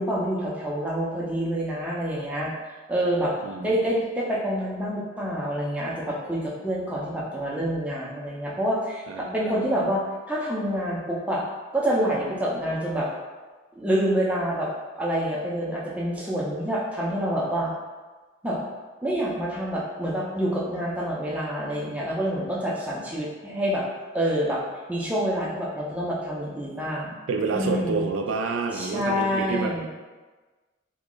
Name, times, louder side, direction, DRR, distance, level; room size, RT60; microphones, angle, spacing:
voice 1, 0.0-2.5 2.9-3.3 3.6-11.4 11.7-13.1 13.8-14.7 14.9-17.7 18.4-18.6 19.0-23.8 24.1-24.6 24.9-27.2 27.5-28.1 28.7-29.9, equal, 5° right, -5 dB, 0.5 m, -27 dB
voice 2, 9.1-9.6 27.3-29.9, right 4 dB, 85° right, 4 dB, 0.3 m, -28 dB
2.9 x 2.3 x 3.7 m, 1.3 s
head